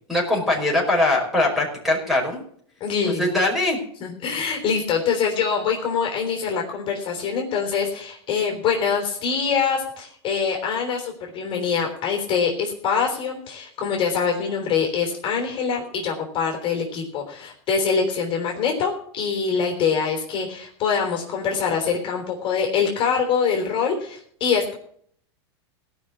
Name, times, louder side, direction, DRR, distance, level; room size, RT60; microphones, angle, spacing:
voice 1, 0.1-2.4 3.1-3.8, left 2 dB, ahead, 0 dB, 5.2 m, -21 dB
voice 2, 2.8-3.3 4.0-24.7, left 6 dB, 35° left, 1 dB, 3.7 m, -24 dB
17.5 x 6.0 x 8.3 m, 0.62 s
hypercardioid pair, 120°, 15 cm